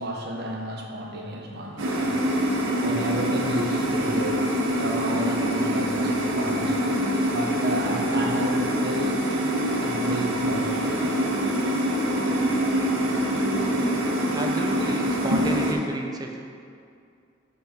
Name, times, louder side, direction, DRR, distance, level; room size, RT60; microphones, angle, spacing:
voice 1, 0.0-9.3 9.7-11.1 15.2-15.4, equal, 55° right, 0 dB, 1.0 m, -32 dB
sound 1, 1.8-15.7, equal, 90° right, 1.0 m, -25 dB
voice 2, 14.3-16.4, right 1 dB, 20° right, 1 dB, 0.7 m, -31 dB
11.5 x 3.8 x 4.3 m, 2.3 s
head